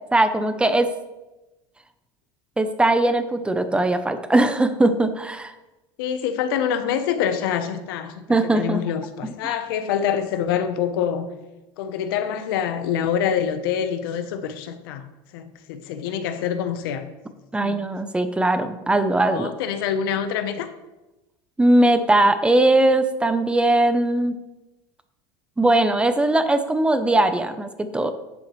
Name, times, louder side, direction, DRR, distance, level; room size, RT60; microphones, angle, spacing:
voice 1, 0.1-0.9 2.6-5.5 8.3-8.8 9.4-9.5 17.5-19.5 21.6-24.4 25.6-28.1, right 2 dB, 10° right, 9 dB, 0.6 m, -20 dB
voice 2, 6.0-11.3 11.8-15.1 15.3-17.1 17.6-17.8 19.3-20.7, left 8 dB, 85° left, 9 dB, 0.8 m, -26 dB
10.5 x 7.0 x 3.1 m, 1.0 s
supercardioid pair, 130°, 12 cm